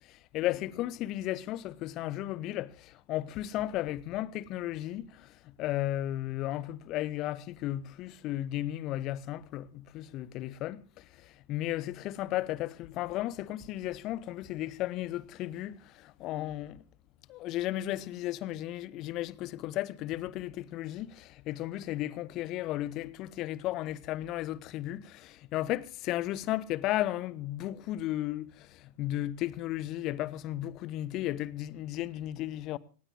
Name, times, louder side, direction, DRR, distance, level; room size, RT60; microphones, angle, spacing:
voice 1, 0.0-16.8 17.3-32.8, left 14 dB, 35° left, 0.9 m, -34 dB
25.5 x 19.0 x 2.4 m
figure-of-eight pair, 90°, 0 cm